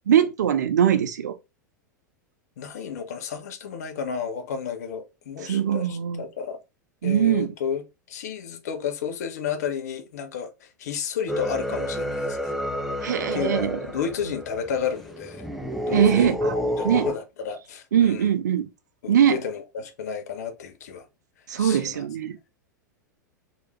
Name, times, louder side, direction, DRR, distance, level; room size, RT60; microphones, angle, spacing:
voice 1, 0.1-1.3 5.4-6.2 7.0-7.5 13.0-13.8 15.9-16.5 16.8-17.1 17.9-18.7 19.1-19.4 21.5-22.4, right 9 dB, 65° right, 0.4 m, -21 dB
voice 2, 2.6-6.6 7.0-12.5 13.3-15.5 15.9-18.3 19.0-21.1 21.6-22.1, left 7 dB, 55° left, 0.5 m, -32 dB
sound 1, 11.3-17.1, equal, ahead, 0.4 m, -30 dB
3.1 x 2.4 x 3.0 m
figure-of-eight pair, 90°, 10 cm